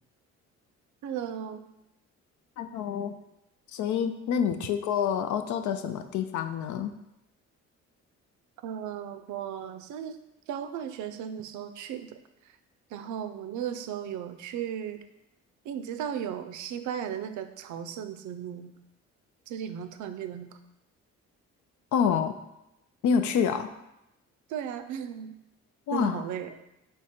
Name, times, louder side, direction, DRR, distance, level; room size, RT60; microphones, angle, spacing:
voice 1, 1.0-1.6 8.6-10.2 10.5-12.2 12.9-15.0 15.6-18.7 19.5-20.6 24.5-25.3 25.9-26.5, right 9 dB, 75° right, 9 dB, 0.5 m, -36 dB
voice 2, 2.6-3.2 3.7-6.9 21.9-22.4 23.0-23.7 25.9-26.2, left 7 dB, 75° left, 9 dB, 0.5 m, -27 dB
3.7 x 3.4 x 4.2 m, 0.87 s
cardioid pair, 90°, 30 cm